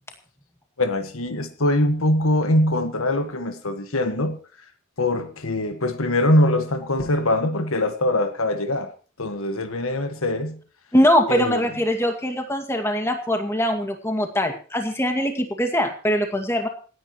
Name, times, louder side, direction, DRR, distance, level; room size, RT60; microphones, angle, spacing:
voice 1, 0.8-4.4 5.0-8.9 9.2-10.6 11.3-11.7, left 1 dB, 85° left, 8 dB, 1.6 m, -22 dB
voice 2, 10.9-16.7, equal, 15° left, 5 dB, 2.0 m, -22 dB
27.0 x 9.5 x 3.1 m, 0.39 s
head